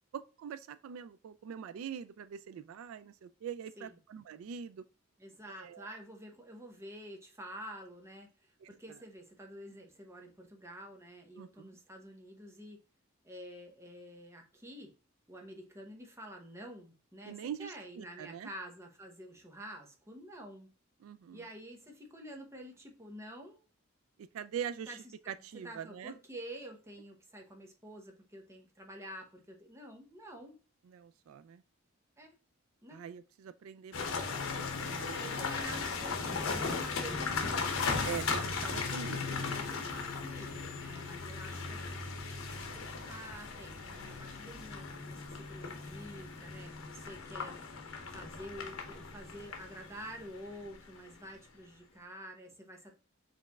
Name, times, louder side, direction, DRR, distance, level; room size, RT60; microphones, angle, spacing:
voice 1, 0.1-4.8 5.6-5.9 8.6-9.0 11.4-11.8 17.3-18.5 21.0-21.5 24.2-25.0 25.3-26.1 30.8-31.6 32.9-35.5 38.0-39.6, right 8 dB, 80° right, 0.3 m, -44 dB
voice 2, 5.2-12.8 13.2-15.0 15.3-20.7 21.3-23.6 24.9-25.0 25.6-30.6 32.2-32.3 32.8-33.0 35.1-37.9 39.5-53.0, equal, 15° right, 0.9 m, -49 dB
sound 1, 33.9-51.1, left 4 dB, 85° left, 0.9 m, -37 dB
5.1 x 3.3 x 2.3 m
head